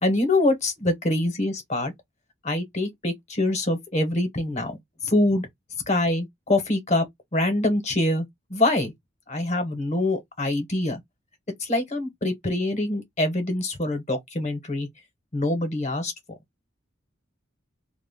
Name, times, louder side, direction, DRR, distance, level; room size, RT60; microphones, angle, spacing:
voice 1, 0.0-1.9 2.4-5.5 5.9-7.0 7.3-8.9 9.3-11.0 11.6-14.9 15.3-16.1, left 2 dB, 35° left, 0.9 m, -25 dB
2.3 x 2.1 x 3.4 m
head